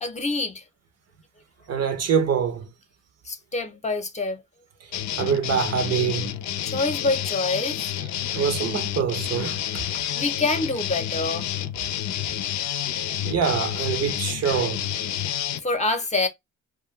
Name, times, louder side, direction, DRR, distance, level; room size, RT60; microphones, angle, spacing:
voice 1, 0.0-0.6 3.2-4.4 6.6-7.8 10.1-11.5 15.6-16.3, left 3 dB, 25° left, 0.8 m, -26 dB
voice 2, 1.7-2.7 5.2-6.3 8.3-10.2 13.2-14.9, right 7 dB, 55° right, 0.8 m, -25 dB
sound 1, 4.9-15.6, left 11 dB, 70° left, 0.5 m, -29 dB
2.3 x 2.3 x 3.0 m
cardioid pair, 90°, 30 cm